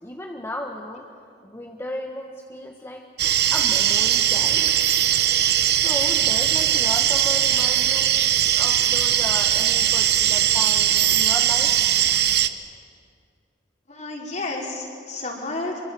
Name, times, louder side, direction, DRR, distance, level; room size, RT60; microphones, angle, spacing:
voice 1, 0.0-1.1 1.4-3.0 3.5-4.8 5.7-8.1 8.6-11.7, left 1 dB, 15° left, 1 dB, 1.3 m, -34 dB
sound 1, 3.2-12.5, right 11 dB, 60° right, 0.9 m, -20 dB
voice 2, 13.9-15.8, left 2 dB, 40° left, -1 dB, 4.6 m, -31 dB
25.5 x 23.5 x 7.7 m, 2.3 s
head